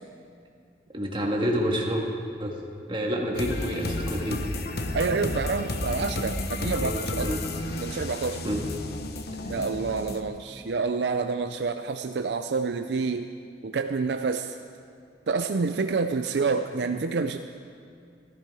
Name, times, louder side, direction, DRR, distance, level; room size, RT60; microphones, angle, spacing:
voice 1, 0.9-2.0 2.4-2.6 2.9-4.5 6.8-7.4 8.4-8.7, equal, 30° right, -1 dB, 1.8 m, -28 dB
sound 1, 3.3-10.2, left 2 dB, 60° left, 0.9 m, -32 dB
voice 2, 4.9-7.3 7.8-8.4 9.5-13.3 13.6-14.6 15.3-17.4, right 4 dB, 70° right, 7 dB, 0.5 m, -28 dB
15.0 x 13.5 x 4.8 m, 2.3 s
head